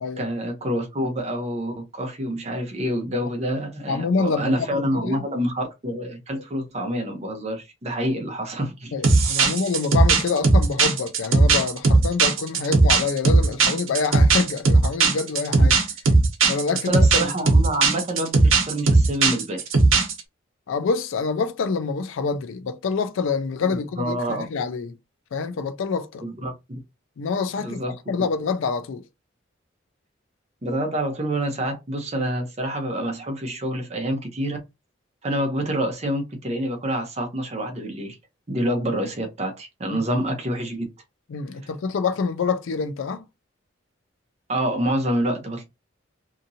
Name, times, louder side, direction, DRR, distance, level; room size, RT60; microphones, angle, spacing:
voice 1, 0.2-8.9 16.9-19.6 23.7-24.4 26.2-26.8 27.6-27.9 30.6-34.6 35.2-38.2 38.5-40.9 44.5-45.6, equal, 35° right, 0.7 m, -27 dB
voice 2, 3.9-5.2 6.4-6.5 8.9-15.8 16.5-17.0 20.7-24.9 25.3-26.2 27.2-29.0 39.9-40.0 41.3-43.2, left 5 dB, 75° left, 0.4 m, -26 dB
sound 1, 9.0-20.2, right 3 dB, 85° right, 0.9 m, -17 dB
2.8 x 2.5 x 2.6 m
head